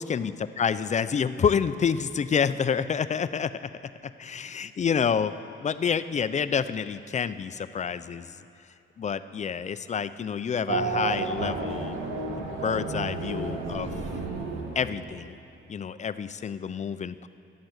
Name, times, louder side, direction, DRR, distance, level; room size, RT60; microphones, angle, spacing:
voice 1, 0.0-3.5 4.2-5.3 5.6-8.3 9.0-12.0 12.4-13.9 14.8-15.4 15.7-17.3, left 7 dB, 35° left, 13 dB, 0.5 m, -28 dB
Race car auto racing / Accelerating revving vroom, 10.7-15.4, right 3 dB, 80° right, 2.0 m, -31 dB
14.5 x 11.0 x 8.1 m, 2.6 s
cardioid pair, 110°, 20 cm